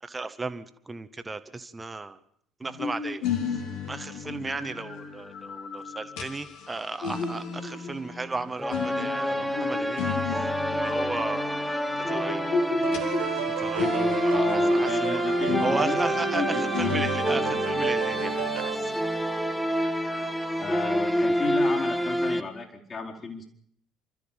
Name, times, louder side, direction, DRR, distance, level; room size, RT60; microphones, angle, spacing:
voice 1, 0.0-2.2 2.6-12.5 13.6-15.2 15.6-18.9, right 3 dB, 20° right, 10 dB, 1.8 m, -35 dB
sound 1, 2.6-15.1 15.4-19.0, left 5 dB, 65° left, 2.9 m, -34 dB
sound 2, 8.6-22.4, equal, ahead, 1.7 m, -27 dB
sound 3, 12.8-18.8, right 14 dB, 75° right, 1.0 m, -33 dB
voice 2, 14.3-16.0 16.4-17.1 17.3-17.6 20.6-23.5, left 4 dB, 35° left, 1 dB, 4.5 m, -34 dB
29.5 x 13.5 x 7.5 m, 0.67 s
figure-of-eight pair, 55°, 0 cm